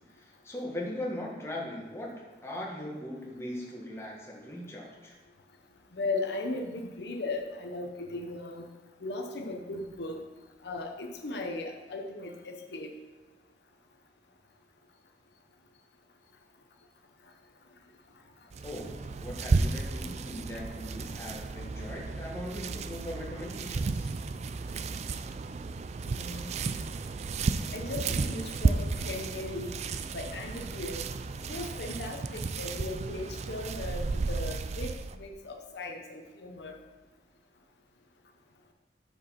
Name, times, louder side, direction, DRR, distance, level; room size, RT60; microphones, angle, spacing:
voice 1, 0.1-2.1 2.4-5.2 18.6-24.1, left 1 dB, 15° left, -3 dB, 1.4 m, -39 dB
voice 2, 5.9-8.7 9.0-10.2 10.6-12.9 26.0-26.5 27.7-29.7 30.1-31.1 31.4-36.8, left 2 dB, 70° left, 2 dB, 0.7 m, -37 dB
sound 1, 18.5-35.2, right 3 dB, 40° right, 0.3 m, -33 dB
6.8 x 5.1 x 5.8 m, 1.3 s
head